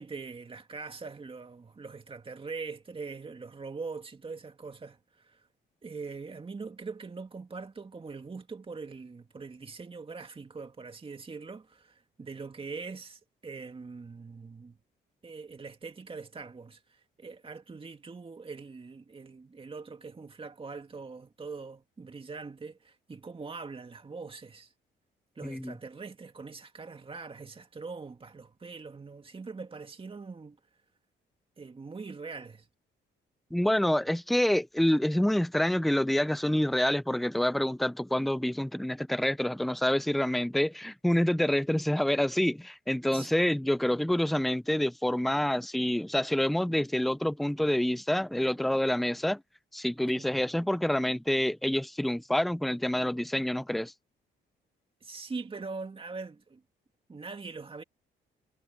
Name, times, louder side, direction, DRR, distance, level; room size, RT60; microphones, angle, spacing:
voice 1, 0.0-5.5 5.8-14.8 15.2-24.7 25.4-30.6 31.6-32.7 43.1-43.3 50.2-50.4 55.0-56.6 57.1-57.8, right 4 dB, 25° right, 2.3 m, -42 dB
voice 2, 25.4-25.7 33.5-49.4 49.7-53.9, left 1 dB, ahead, 0.3 m, -27 dB
cardioid pair, 90°, 20 cm